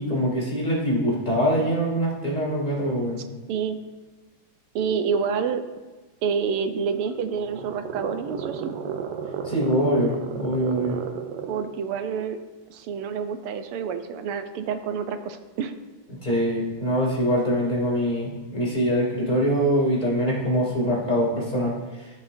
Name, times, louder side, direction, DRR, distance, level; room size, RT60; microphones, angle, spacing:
voice 1, 0.0-3.2 9.4-11.0 16.2-21.7, equal, 20° left, -4 dB, 2.5 m, -23 dB
voice 2, 3.5-3.8 4.7-5.6 6.2-8.8 11.4-12.4 12.7-15.7, right 6 dB, 85° right, 8 dB, 1.7 m, -28 dB
sound 1, 6.8-11.8, right 7 dB, 70° right, 1.1 m, -34 dB
15.5 x 6.2 x 2.6 m, 1.2 s
omnidirectional pair, 2.4 m